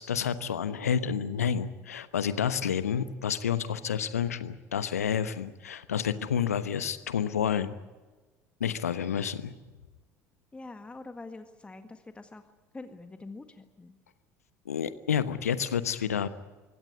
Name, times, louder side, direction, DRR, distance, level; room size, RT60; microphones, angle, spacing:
voice 1, 0.0-7.7 8.6-9.5 14.7-16.3, left 8 dB, 75° left, 14 dB, 1.1 m, -29 dB
voice 2, 10.5-12.4 12.7-14.0, left 3 dB, 15° left, 8 dB, 1.7 m, -45 dB
23.5 x 17.0 x 9.7 m, 1.3 s
figure-of-eight pair, 65°, 8 cm